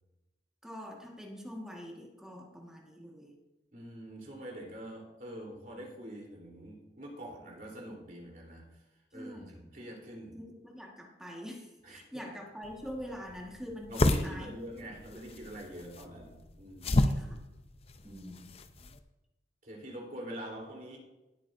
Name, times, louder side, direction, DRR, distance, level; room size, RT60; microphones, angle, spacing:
voice 1, 0.6-3.3 9.1-9.5 10.3-14.5 16.8-17.4 18.0-18.5, equal, 5° right, -1 dB, 1.6 m, -44 dB
voice 2, 3.7-8.7 9.1-10.4 11.8-12.2 13.9-17.0 18.0-18.5 19.6-21.0, right 1 dB, 50° right, -1 dB, 3.5 m, -45 dB
sound 1, 12.6-19.0, left 1 dB, 35° left, 0.6 m, -32 dB
19.5 x 8.6 x 2.6 m, 1.0 s
head